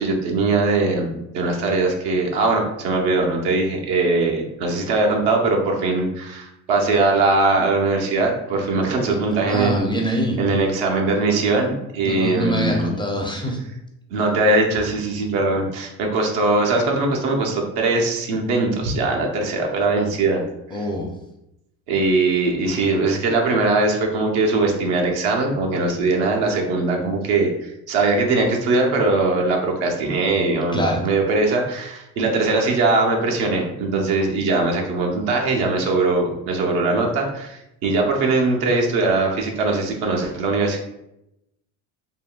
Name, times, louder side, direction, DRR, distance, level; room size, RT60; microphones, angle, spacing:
voice 1, 0.0-10.0 10.4-12.9 14.1-20.4 21.9-40.8, right 3 dB, 75° right, 1 dB, 0.8 m, -21 dB
voice 2, 9.5-10.4 12.0-13.6 20.7-21.1 30.7-31.0, equal, 10° left, 0 dB, 0.4 m, -24 dB
3.6 x 2.2 x 2.3 m, 0.86 s
supercardioid pair, 85°, 40 cm